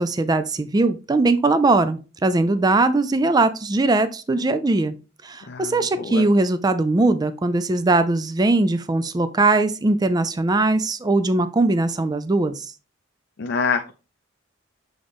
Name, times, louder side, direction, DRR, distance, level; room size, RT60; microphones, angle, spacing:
voice 1, 0.0-4.9 5.2-12.7, right 2 dB, 20° right, 11 dB, 0.4 m, -20 dB
voice 2, 5.5-6.3 13.4-13.9, left 5 dB, 55° left, 6 dB, 0.5 m, -26 dB
6.8 x 3.8 x 3.6 m, 0.32 s
head